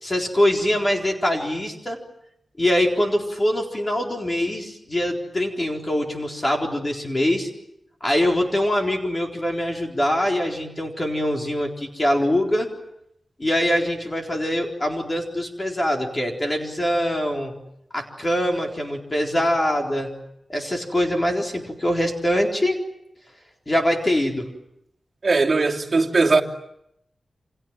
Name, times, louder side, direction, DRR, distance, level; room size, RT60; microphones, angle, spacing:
voice 1, 0.0-2.0 2.6-7.5 8.0-12.7 13.4-17.5 17.9-20.1 20.5-22.8 23.7-24.5, left 1 dB, 25° left, 4.1 m, -23 dB
voice 2, 25.2-26.4, right 3 dB, 40° right, 3.1 m, -19 dB
29.5 x 27.0 x 7.5 m
wide cardioid pair, 130°, 0 cm